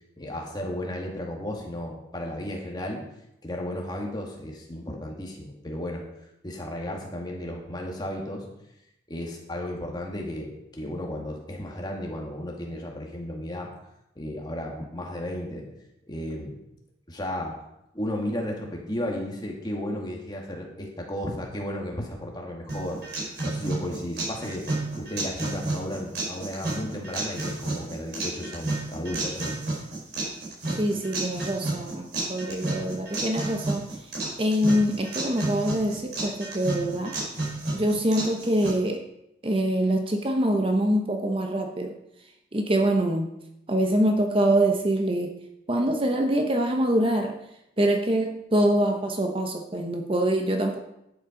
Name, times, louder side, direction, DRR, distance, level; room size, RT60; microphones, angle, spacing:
voice 1, 0.2-3.0 3.4-6.0 6.4-8.4 9.1-13.7 14.2-15.7 16.1-16.6 17.1-17.6 17.9-23.0 23.4-24.7 25.0-29.6, left 1 dB, 20° left, 0 dB, 2.1 m, -34 dB
sound 1, 22.7-38.7, right 2 dB, 55° right, 4.3 m, -32 dB
voice 2, 30.8-33.9 34.4-37.1 37.7-39.0 39.4-41.9 42.5-43.3 43.7-45.3 45.7-47.3 47.8-50.8, right 1 dB, 30° right, 4 dB, 1.0 m, -24 dB
11.0 x 8.5 x 5.1 m, 0.85 s
head